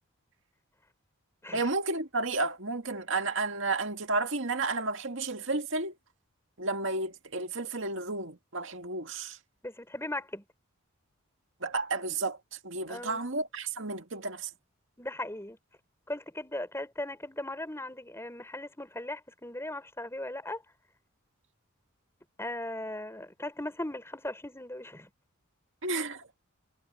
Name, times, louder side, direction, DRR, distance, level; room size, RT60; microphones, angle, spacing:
voice 1, 1.5-6.0 6.6-9.4 11.6-12.4 12.6-14.5 25.8-26.2, right 3 dB, 60° right, 2.2 m, -32 dB
voice 2, 9.6-10.4 12.9-13.3 15.0-15.6 16.1-20.6 22.4-25.1, left 1 dB, 10° left, 5.5 m, -38 dB
head